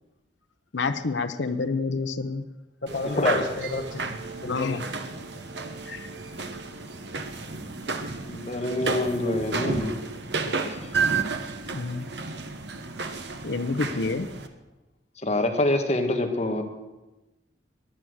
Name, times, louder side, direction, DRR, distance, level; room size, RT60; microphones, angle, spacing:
voice 1, 0.7-2.4 4.4-4.8 5.9-6.1 11.7-12.1 13.4-14.3, left 4 dB, 80° left, 7 dB, 0.8 m, -28 dB
voice 2, 2.8-4.8, left 2 dB, 60° left, 0 dB, 1.3 m, -31 dB
sound 1, 2.9-14.5, right 4 dB, 65° right, 1.3 m, -32 dB
voice 3, 8.2-10.0 10.6-10.7 15.2-16.6, left 1 dB, 35° left, 4 dB, 1.7 m, -25 dB
22.0 x 8.7 x 6.4 m, 1.1 s
head